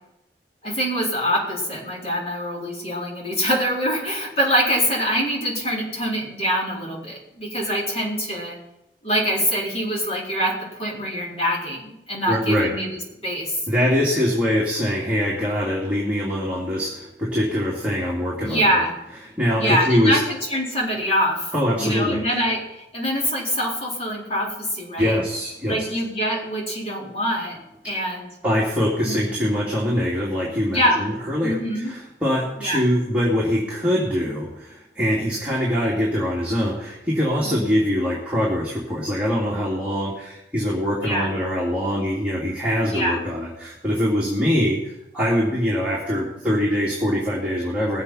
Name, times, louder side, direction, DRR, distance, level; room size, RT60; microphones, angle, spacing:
voice 1, 0.6-8.6 9.0-13.6 18.4-18.9 19.6-21.5 21.8-25.2 25.6-27.6 27.8-28.3 29.0-29.2 30.7-31.1 31.4-31.9 32.6-32.8 37.4-37.7 41.0-41.3 42.9-43.2, equal, 35° left, -4 dB, 4.3 m, -24 dB
voice 2, 12.3-12.7 13.7-18.8 19.4-20.2 21.5-22.2 25.0-25.8 28.4-48.0, equal, 10° right, -7 dB, 2.7 m, -23 dB
20.0 x 7.9 x 5.7 m, 0.90 s
head